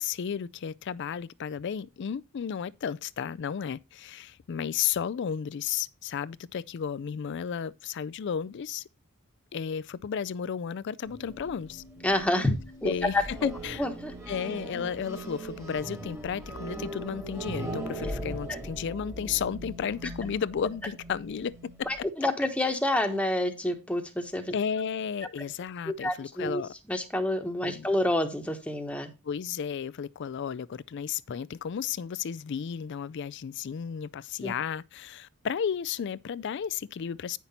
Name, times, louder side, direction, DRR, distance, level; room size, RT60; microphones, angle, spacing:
voice 1, 0.0-8.8 9.5-11.8 12.5-12.6 12.8-13.8 14.3-21.9 24.5-26.7 27.6-27.9 29.2-37.4, left 7 dB, 55° left, 0.4 m, -33 dB
sound 1, 11.0-22.0, right 1 dB, 15° right, 1.6 m, -40 dB
voice 2, 12.0-12.5 12.8-13.5 13.8-14.1 18.5-18.6 21.8-24.5 25.9-26.6 26.9-29.1 34.4-34.5, left 1 dB, 5° left, 1.1 m, -28 dB
9.3 x 5.8 x 4.1 m
head